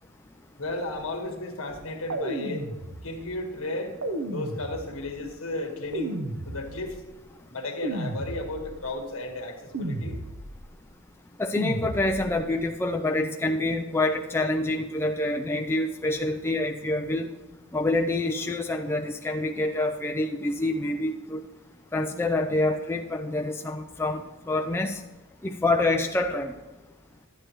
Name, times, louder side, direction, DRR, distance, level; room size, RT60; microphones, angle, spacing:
voice 1, 0.6-2.7 3.0-4.0 4.2-6.2 6.4-7.0 7.5-10.2, left 2 dB, 65° left, 3 dB, 1.5 m, -34 dB
sound 1, 2.1-3.3 4.0-5.2 5.9-7.1 7.8-8.9 9.7-10.7 11.6-12.5, right 1 dB, 65° right, 0.8 m, -33 dB
voice 2, 11.4-17.3 17.7-21.4 21.9-24.2 24.5-25.0 25.4-26.5, left 2 dB, 10° left, 3 dB, 0.4 m, -26 dB
11.0 x 9.8 x 3.0 m, 1.1 s
head